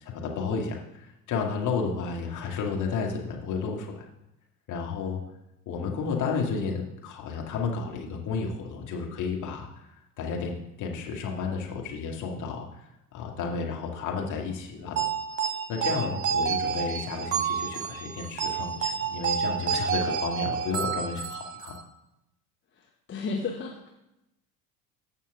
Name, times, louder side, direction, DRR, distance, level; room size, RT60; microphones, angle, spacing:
voice 1, 0.0-4.0 4.7-5.2 5.7-9.7 10.2-12.6 13.1-15.1 15.7-21.8, left 5 dB, 40° left, 0 dB, 2.0 m, -32 dB
sound 1, 15.0-21.8, right 6 dB, 65° right, 1.0 m, -29 dB
voice 2, 22.7-23.9, left 4 dB, 25° left, 1 dB, 1.0 m, -33 dB
14.5 x 5.6 x 3.6 m, 0.89 s
figure-of-eight pair, 70°, 46 cm